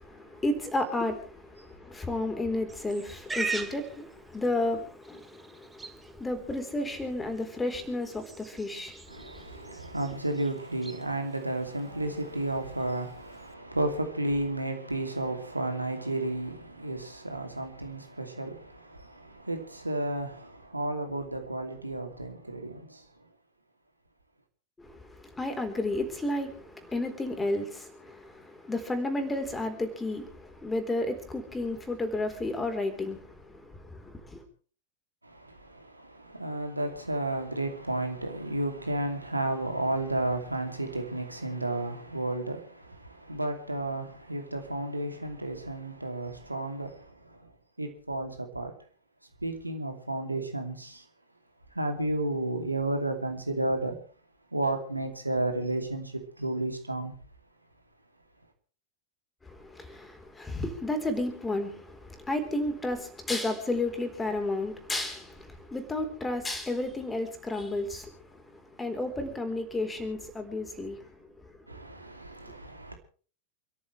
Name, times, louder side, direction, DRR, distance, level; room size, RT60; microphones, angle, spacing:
voice 1, 0.0-9.7 24.8-34.4 59.4-71.6, left 2 dB, 10° left, 3.9 m, -32 dB
Livestock farm animals working animals, 2.7-13.5, right 3 dB, 10° right, 2.1 m, -43 dB
voice 2, 9.1-23.0 35.2-47.5 47.8-48.7 49.4-51.0 51.7-54.0 54.5-57.1 71.7-72.9, right 1 dB, 85° right, 2.7 m, -32 dB
28.5 x 14.0 x 3.3 m
figure-of-eight pair, 90°, 0 cm